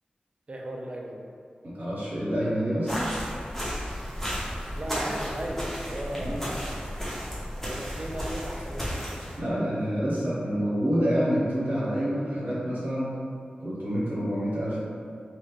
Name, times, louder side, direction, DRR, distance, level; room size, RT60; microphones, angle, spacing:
voice 1, 0.5-1.3 4.8-6.4 7.5-9.2, right 1 dB, 40° right, 0 dB, 0.4 m, -36 dB
voice 2, 1.8-3.1 6.1-6.4 9.4-13.2 13.6-14.8, equal, 80° right, -9 dB, 0.9 m, -27 dB
sound 1, 2.9-9.4, equal, 10° left, 0.8 m, -34 dB
sound 2, 3.1-8.9, equal, 30° left, 0.4 m, -39 dB
3.1 x 3.0 x 2.4 m, 2.4 s
wide cardioid pair, 90°, 3 cm